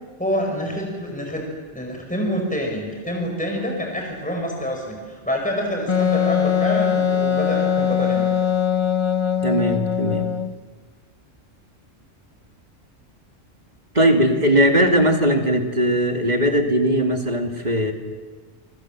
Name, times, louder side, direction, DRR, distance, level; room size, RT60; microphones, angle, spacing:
voice 1, 0.2-1.5 1.7-8.3, equal, 5° left, 1 dB, 5.3 m, -27 dB
Wind instrument woodwind instrument, 5.9-10.5, left 8 dB, 30° left, 0.7 m, -21 dB
voice 2, 9.4-10.3 13.9-17.9, equal, 35° right, 4 dB, 2.5 m, -19 dB
26.5 x 25.0 x 7.5 m, 1.4 s
omnidirectional pair, 1.3 m